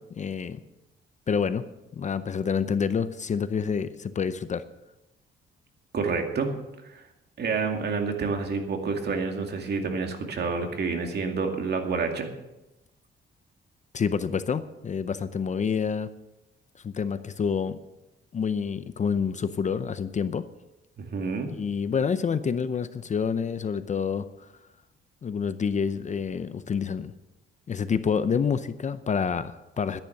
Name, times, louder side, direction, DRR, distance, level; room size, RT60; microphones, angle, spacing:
voice 1, 0.1-0.6 1.3-1.6 1.9-4.6 13.9-16.1 16.8-17.8 18.3-20.5 21.5-24.3 25.2-27.1 27.7-30.0, left 6 dB, 35° left, 13 dB, 0.6 m, -28 dB
voice 2, 5.9-6.5 6.8-7.0 7.4-12.3 21.0-21.5, right 4 dB, 50° right, 4 dB, 2.3 m, -28 dB
12.5 x 10.5 x 6.6 m, 0.95 s
cardioid pair, 120°, 21 cm